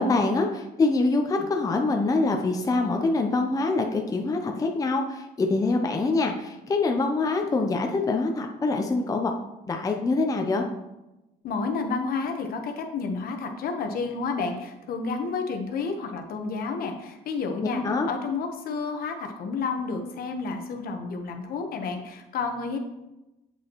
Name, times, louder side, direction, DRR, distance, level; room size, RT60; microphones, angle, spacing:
voice 1, 0.0-9.3 9.7-10.6 17.8-18.1, left 3 dB, 20° left, 3 dB, 0.6 m, -25 dB
voice 2, 11.4-22.8, left 4 dB, 60° left, 4 dB, 1.0 m, -30 dB
8.0 x 5.1 x 3.0 m, 0.97 s
cardioid pair, 110°, 17 cm